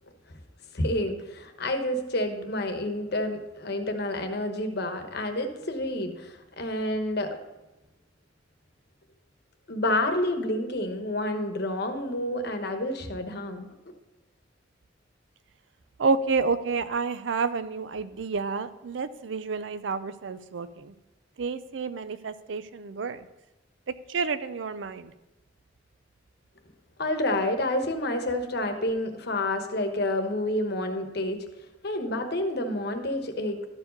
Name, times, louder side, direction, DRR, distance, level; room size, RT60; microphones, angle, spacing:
voice 1, 0.7-7.4 9.7-13.7 27.0-31.4 31.8-33.7, left 1 dB, 60° left, 6 dB, 1.0 m, -29 dB
voice 2, 16.0-20.9 21.4-23.3 24.1-25.1, right 4 dB, 70° right, 13 dB, 0.5 m, -29 dB
12.5 x 4.8 x 5.2 m, 1.0 s
head